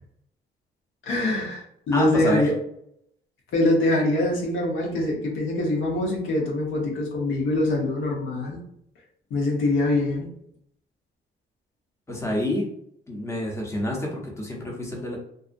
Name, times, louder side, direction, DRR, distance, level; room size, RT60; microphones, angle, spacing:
voice 1, 1.1-2.5 3.5-8.6 9.3-10.3, left 1 dB, 75° left, -1 dB, 0.9 m, -24 dB
voice 2, 1.9-2.5 12.1-12.7 13.1-15.2, left 1 dB, 15° left, -2 dB, 0.8 m, -28 dB
2.5 x 2.4 x 2.5 m, 0.72 s
cardioid pair, 90°, 20 cm